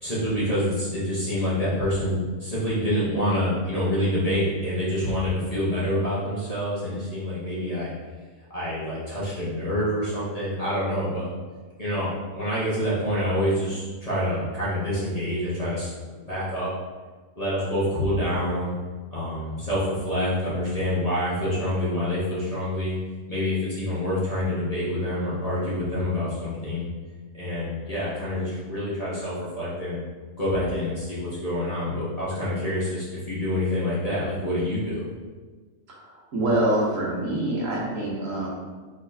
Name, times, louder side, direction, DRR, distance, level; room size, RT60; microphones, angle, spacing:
voice 1, 0.0-7.9 8.5-11.3 11.8-15.9 16.2-16.7 17.4-18.7 19.1-23.0 23.3-26.9 27.3-30.0 30.4-35.0, left 1 dB, 30° left, -9 dB, 1.1 m, -27 dB
voice 2, 36.0-38.5, right 1 dB, 65° right, -5 dB, 1.3 m, -25 dB
4.2 x 3.8 x 2.7 m, 1.4 s
omnidirectional pair, 1.5 m